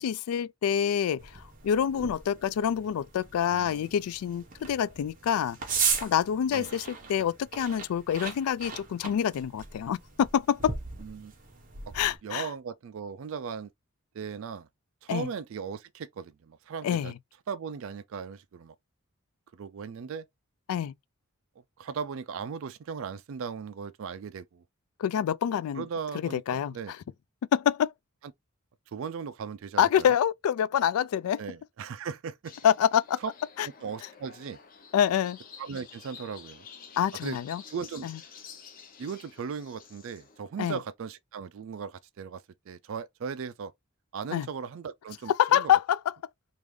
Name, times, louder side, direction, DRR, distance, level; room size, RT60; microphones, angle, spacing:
voice 1, 0.0-10.8 11.9-12.5 15.1-15.3 16.8-17.1 20.7-20.9 25.0-25.9 26.3-27.0 27.5-27.9 29.8-31.4 32.6-33.2 33.6-33.7 34.9-35.4 37.0-37.6 38.0-38.2 40.6-40.8 44.3-44.5 45.3-46.0, left 9 dB, 80° left, 0.3 m, -26 dB
sound 1, 1.2-12.2, right 6 dB, 40° right, 0.9 m, -37 dB
voice 2, 3.5-3.8 6.5-6.7 11.0-11.3 12.2-13.7 14.1-14.7 15.0-17.1 17.5-18.7 19.5-20.3 21.8-24.6 25.8-26.9 28.9-30.1 31.4-32.5 33.2-33.3 33.8-34.6 35.6-36.7 37.2-37.4 37.7-38.1 39.0-43.7 44.1-45.7, right 6 dB, 65° right, 0.3 m, -37 dB
sound 2, 32.4-40.4, left 6 dB, 40° left, 0.7 m, -50 dB
3.5 x 2.5 x 3.1 m
head